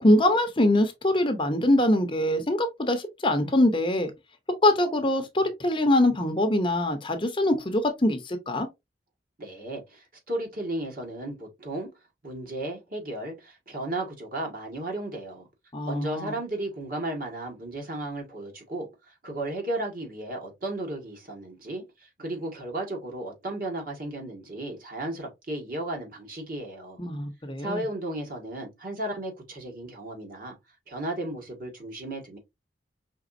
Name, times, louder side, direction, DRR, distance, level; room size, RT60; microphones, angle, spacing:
voice 1, 0.0-4.1 4.6-8.7 15.7-16.4 27.0-27.8, left 1 dB, 25° left, 0.7 m, -23 dB
voice 2, 9.4-11.9 12.2-15.5 15.8-27.0 27.6-30.6 30.9-32.4, right 1 dB, 50° right, 1.7 m, -34 dB
5.1 x 3.6 x 2.6 m
head